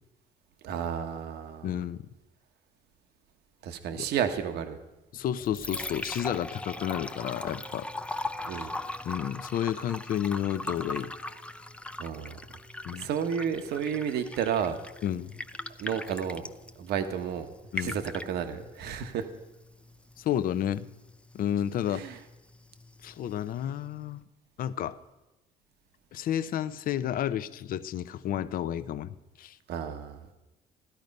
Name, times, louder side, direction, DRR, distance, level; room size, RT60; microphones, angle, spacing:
voice 1, 0.6-1.8 3.6-4.8 8.5-8.7 12.0-12.3 12.9-14.8 15.8-16.4 16.8-17.5 17.8-19.3 21.9-22.2 29.7-30.2, right 8 dB, 75° right, 7 dB, 1.1 m, -31 dB
voice 2, 1.6-2.0 3.9-4.1 5.1-7.9 8.5-8.7 9.1-11.1 12.8-13.1 15.0-15.3 17.7-18.0 20.2-20.9 21.3-22.1 23.0-24.2 24.6-25.0 26.1-29.6, left 10 dB, 55° left, 14 dB, 0.6 m, -31 dB
Liquid, 5.2-24.2, left 2 dB, 5° left, 0.5 m, -41 dB
16.0 x 12.5 x 5.3 m, 1.0 s
cardioid pair, 110°, 17 cm